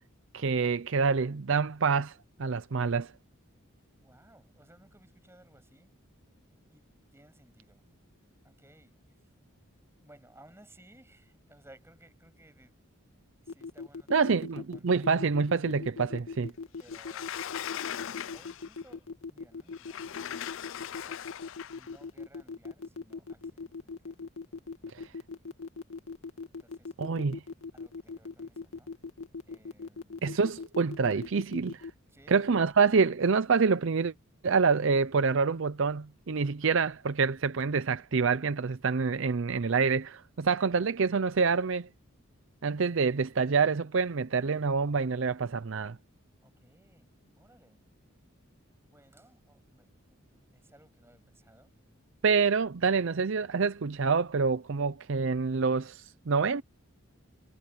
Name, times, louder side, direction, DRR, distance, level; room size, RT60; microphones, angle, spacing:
voice 1, 0.3-2.1 2.4-3.1 14.1-16.5 24.9-25.1 27.0-27.4 30.2-31.8 32.3-34.1 34.4-41.9 42.6-46.0 52.2-56.6, right 5 dB, 60° right, 0.5 m, -27 dB
voice 2, 4.0-5.9 6.7-7.8 8.4-9.3 10.0-12.8 13.4-15.1 16.8-17.4 18.0-21.2 21.7-24.2 24.8-25.0 26.5-26.9 27.7-28.9 29.5-30.5 32.1-32.4 46.4-47.1 47.4-47.8 48.8-51.7, right 1 dB, 10° right, 7.1 m, -60 dB
sound 1, 13.5-31.9, left 4 dB, 80° left, 2.1 m, -40 dB
Sliding door, 16.9-18.8 19.7-21.9, left 10 dB, 65° left, 0.4 m, -39 dB
head